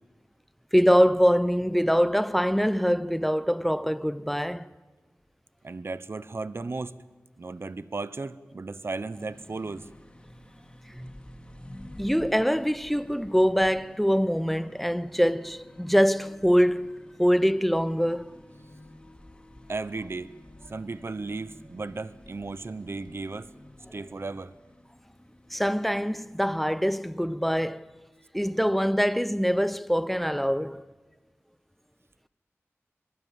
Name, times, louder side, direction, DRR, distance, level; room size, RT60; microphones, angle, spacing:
voice 1, 0.7-4.7 11.0-11.1 12.0-18.4 25.5-27.9 28.3-30.8, equal, ahead, 0.7 m, -24 dB
voice 2, 5.6-7.0 7.4-9.9 19.7-20.3 20.6-23.5 23.9-24.5, right 3 dB, 55° right, 0.8 m, -35 dB
sound 1, 9.1-26.8, left 1 dB, 20° left, 2.2 m, -51 dB
Wind instrument woodwind instrument, 15.4-21.3, left 2 dB, 75° left, 5.1 m, -59 dB
23.0 x 21.0 x 7.6 m
wide cardioid pair, 55°, 5 cm